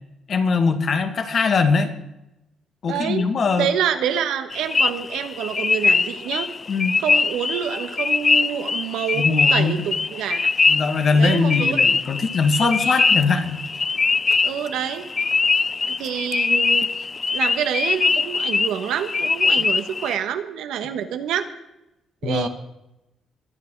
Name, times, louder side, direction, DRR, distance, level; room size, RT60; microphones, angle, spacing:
voice 1, 0.3-1.9 2.8-3.7 6.7-7.0 9.1-9.8 10.7-13.6 22.2-22.5, left 4 dB, 50° left, 8 dB, 1.9 m, -21 dB
voice 2, 2.8-3.3 3.5-6.5 7.0-10.5 11.1-11.8 12.6-13.0 14.4-15.1 16.0-16.9 17.3-21.5 22.2-22.5, right 9 dB, 85° right, 8 dB, 1.3 m, -27 dB
sound 1, 4.5-20.2, left 4 dB, 35° left, 0.4 m, -22 dB
22.5 x 8.9 x 4.7 m, 0.90 s
cardioid pair, 90°, 0 cm